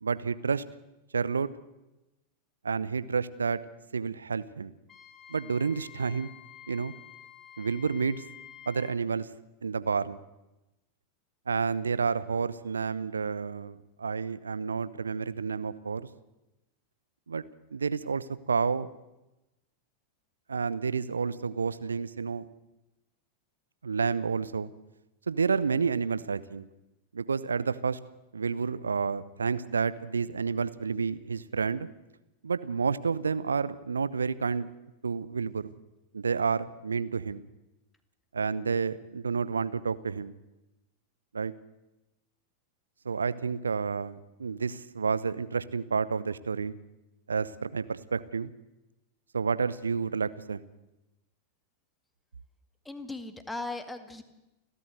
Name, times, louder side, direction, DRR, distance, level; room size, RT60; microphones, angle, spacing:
voice 1, 0.0-0.6 1.1-1.5 2.6-3.6 3.9-4.7 5.3-6.3 6.7-6.9 7.6-8.2 8.7-9.3 9.6-10.2 11.5-16.1 17.3-17.4 17.7-18.9 20.5-22.5 23.8-24.7 25.3-26.7 27.1-28.0 28.3-31.9 32.4-34.7 35.0-35.7 36.1-37.4 38.3-40.3 41.3-41.5 43.0-46.8 47.3-48.5 49.3-50.6, right 5 dB, 75° right, 16 dB, 0.9 m, -30 dB
Wind instrument woodwind instrument, 4.9-9.0, left 10 dB, 25° left, 2.1 m, -49 dB
voice 2, 52.9-54.2, left 2 dB, 5° left, 8 dB, 2.0 m, -38 dB
30.0 x 12.5 x 7.9 m, 0.97 s
figure-of-eight pair, 90°, 0 cm